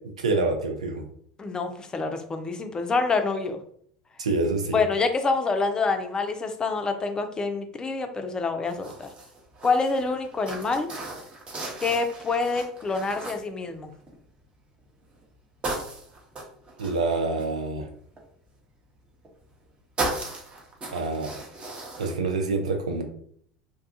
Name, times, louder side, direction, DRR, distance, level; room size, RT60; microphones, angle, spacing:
voice 1, 0.2-1.0 4.2-4.8 16.8-17.8 20.9-21.3 22.0-23.0, right 3 dB, 80° right, 4 dB, 0.5 m, -26 dB
voice 2, 1.4-3.6 4.7-9.1 9.6-10.9 11.8-13.9, left 4 dB, 20° left, 6 dB, 0.4 m, -26 dB
sound 1, 8.7-14.3 14.8-15.2 15.6-18.2 19.2-19.6 20.0-22.1, right 2 dB, 30° right, 0.8 m, -36 dB
2.6 x 2.3 x 2.6 m, 0.62 s
hypercardioid pair, 75°, 4 cm